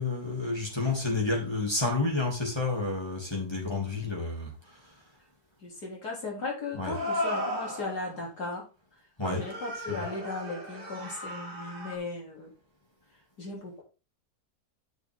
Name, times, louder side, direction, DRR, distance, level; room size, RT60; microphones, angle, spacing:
voice 1, 0.0-4.5 6.7-7.0 9.2-9.4 9.9-10.1, left 3 dB, 15° left, -2 dB, 2.9 m, -30 dB
sound 1, 3.7-3.8 6.9-8.1 9.3-12.0, left 1 dB, 35° right, 2.9 m, -35 dB
voice 2, 5.6-8.6 9.2-12.5 13.4-13.8, left 3 dB, 80° left, -2 dB, 4.4 m, -37 dB
9.5 x 6.4 x 3.7 m, 0.32 s
omnidirectional pair, 1.7 m